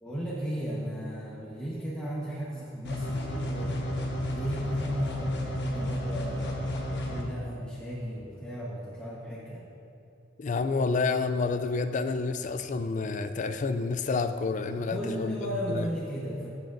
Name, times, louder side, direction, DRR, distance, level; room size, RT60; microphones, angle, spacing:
voice 1, 0.0-3.8 4.2-6.6 7.1-9.6 14.7-16.5, equal, 5° left, -8 dB, 1.2 m, -35 dB
sound 1, 2.8-7.2, left 1 dB, 65° left, 1.2 m, -31 dB
voice 2, 10.4-15.9, left 4 dB, 40° left, 10 dB, 0.4 m, -29 dB
14.0 x 7.8 x 2.6 m, 2.7 s
head